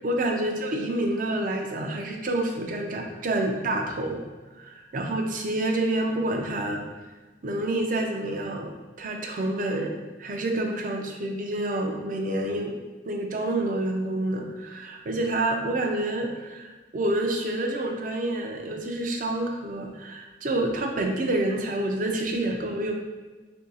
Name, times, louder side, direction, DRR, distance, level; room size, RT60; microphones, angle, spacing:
voice 1, 0.0-4.2 4.5-6.8 7.4-8.7 9.0-12.7 13.0-22.9, right 1 dB, 45° right, 2 dB, 0.4 m, -28 dB
2.7 x 2.6 x 4.0 m, 1.3 s
head